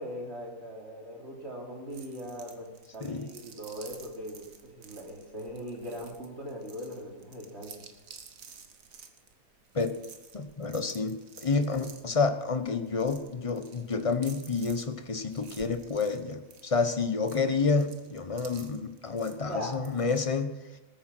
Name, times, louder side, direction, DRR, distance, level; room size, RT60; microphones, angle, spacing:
voice 1, 0.0-7.8 19.5-19.8, equal, 50° right, 0 dB, 3.1 m, -40 dB
sound 1, 1.9-20.2, right 6 dB, 75° right, 1.7 m, -52 dB
voice 2, 10.3-20.5, left 4 dB, 25° left, 9 dB, 1.0 m, -29 dB
19.5 x 8.6 x 6.1 m, 1.1 s
omnidirectional pair, 1.4 m